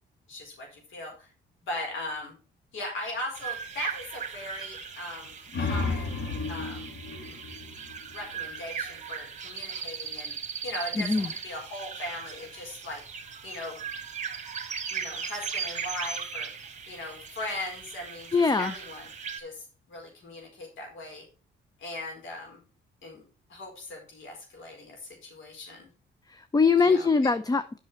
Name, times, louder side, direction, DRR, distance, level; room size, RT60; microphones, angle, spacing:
voice 1, 0.3-1.3 1.6-2.4 2.7-6.2 6.5-6.9 7.3-7.4 8.1-10.3 10.6-13.0 13.4-13.8 14.9-16.5 16.9-19.1 19.4-21.2 21.8-22.6 23.0-23.2 23.5-25.9 26.8-27.1, left 1 dB, 75° left, 1 dB, 4.7 m, -39 dB
sound 1, 3.3-19.4, right 6 dB, 35° right, 1.7 m, -38 dB
sound 2, 5.3-8.7, left 3 dB, 60° left, 2.6 m, -33 dB
voice 2, 11.0-11.3 18.3-18.7 26.3-27.8, left 4 dB, 20° left, 12 dB, 0.6 m, -23 dB
8.5 x 6.2 x 4.4 m, 0.37 s
cardioid pair, 90°, 20 cm